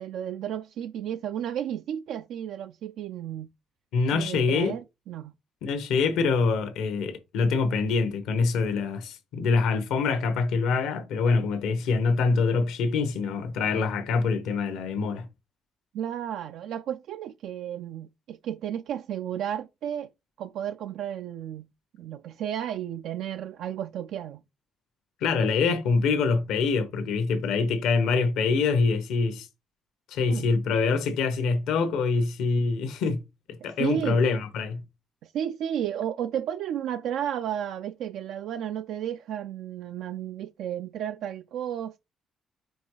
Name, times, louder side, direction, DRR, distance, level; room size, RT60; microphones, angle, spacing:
voice 1, 0.0-3.5 4.1-5.3 15.9-20.1 20.4-21.7 22.0-24.4 30.3-30.5 33.8-34.2 35.2-42.0, right 10 dB, 80° right, 0.3 m, -33 dB
voice 2, 3.9-4.8 5.6-15.3 25.2-29.5 30.1-33.2 33.6-34.8, left 4 dB, 90° left, 1.2 m, -25 dB
5.3 x 4.6 x 4.8 m
cardioid pair, 90°, 0 cm